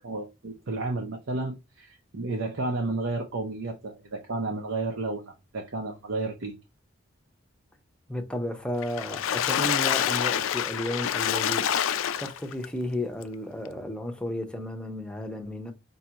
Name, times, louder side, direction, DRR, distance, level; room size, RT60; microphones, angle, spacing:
voice 1, 0.0-6.6, right 2 dB, 80° right, 0.7 m, -32 dB
voice 2, 8.1-11.8 12.2-15.7, left 1 dB, 5° left, 0.6 m, -33 dB
Water / Splash splatter, 8.8-12.7 13.2-13.3 13.6-13.7, left 9 dB, 85° left, 0.4 m, -27 dB
5.2 x 2.4 x 2.8 m
head